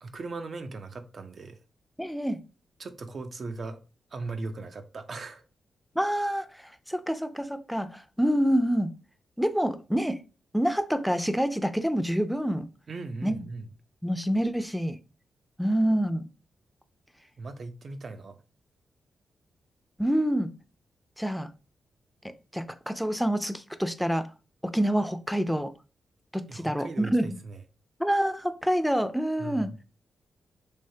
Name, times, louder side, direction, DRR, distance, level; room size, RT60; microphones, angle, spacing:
voice 1, 0.0-1.6 2.8-3.8 4.1-5.4 12.9-13.7 17.4-18.4 26.5-27.6 29.4-29.8, right 3 dB, 60° right, 0.5 m, -38 dB
voice 2, 2.0-2.4 6.0-6.5 6.9-8.9 9.4-10.2 10.5-12.7 13.2-13.4 14.0-15.0 15.6-16.3 20.0-20.5 21.2-21.5 22.5-24.3 24.6-25.7 26.3-27.4 28.0-29.7, equal, ahead, 0.5 m, -27 dB
3.3 x 3.1 x 2.7 m
supercardioid pair, 50°, 0 cm